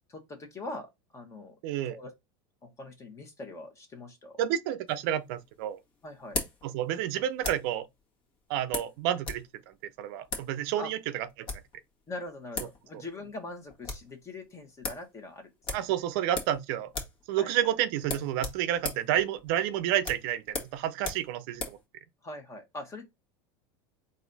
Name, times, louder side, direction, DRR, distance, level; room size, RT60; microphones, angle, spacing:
voice 1, 0.1-1.5 1.9-2.1 2.6-4.4 6.0-6.4 10.8-10.9 12.1-15.8 17.4-17.7 22.2-23.0, left 2 dB, 25° left, 1.2 m, -42 dB
voice 2, 1.6-2.0 4.4-5.8 6.6-7.9 8.5-9.5 9.8-11.5 15.7-16.9 17.3-21.8, right 11 dB, 65° right, 0.6 m, -30 dB
sound 1, 4.9-7.8 8.7-9.5 9.7-9.8 10.2-10.5 11.3-11.7 12.3-12.4 12.5-12.8 13.1-13.2 13.5-14.1 14.5-14.6 14.8-15.1 15.6-16.6 16.9-17.2 17.5-17.6 18.0-21.8, left 3 dB, 40° left, 1.5 m, -37 dB
4.0 x 2.6 x 4.0 m
supercardioid pair, 125°, 13 cm